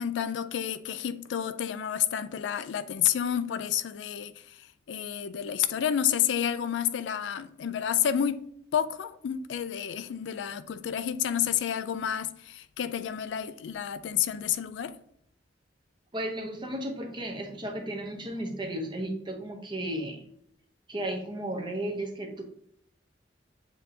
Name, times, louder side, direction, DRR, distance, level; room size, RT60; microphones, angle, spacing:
voice 1, 0.0-8.4 8.7-15.0, left 9 dB, 80° left, 0.3 m, -30 dB
voice 2, 16.1-20.2 20.9-22.4, right 1 dB, 25° right, 0.7 m, -34 dB
7.3 x 2.7 x 2.6 m
head